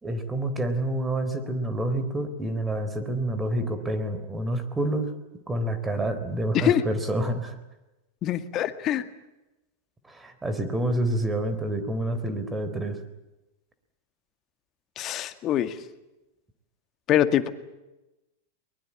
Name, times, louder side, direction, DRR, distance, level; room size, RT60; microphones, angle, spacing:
voice 1, 0.0-5.1 5.5-7.6 10.1-13.0, right 1 dB, 15° right, 10 dB, 3.9 m, -28 dB
voice 2, 8.2-9.0 15.0-15.7 17.1-17.5, left 11 dB, 40° left, 10 dB, 2.0 m, -24 dB
23.0 x 21.5 x 8.7 m, 1.0 s
hypercardioid pair, 100°, 0 cm